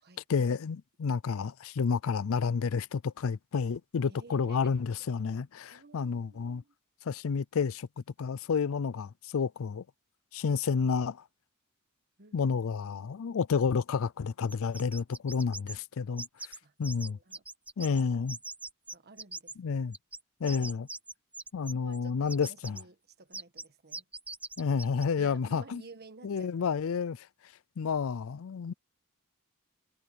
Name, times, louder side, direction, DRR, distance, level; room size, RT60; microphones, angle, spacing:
voice 1, 0.3-6.6 7.1-7.9 8.2-9.8 10.3-11.2 12.3-16.3 16.8-17.2 17.8-18.4 19.6-20.0 20.4-20.9 21.5-22.8 24.6-25.8 26.2-27.3 27.8-28.7, left 5 dB, 65° left, 0.4 m, -30 dB
voice 2, 4.1-4.8 5.7-6.7 7.3-7.4 12.2-13.1 16.6-16.7 17.0-17.4 18.1-18.3 18.9-19.8 21.7-24.0 25.2-26.5, right 3 dB, 45° right, 1.4 m, -54 dB
sound 1, 14.5-15.8 16.2-16.6 16.8-18.0 18.3-19.6 19.9-22.0 22.3-22.8 23.3-23.7 23.9-25.0, right 3 dB, 5° right, 0.4 m, -42 dB
head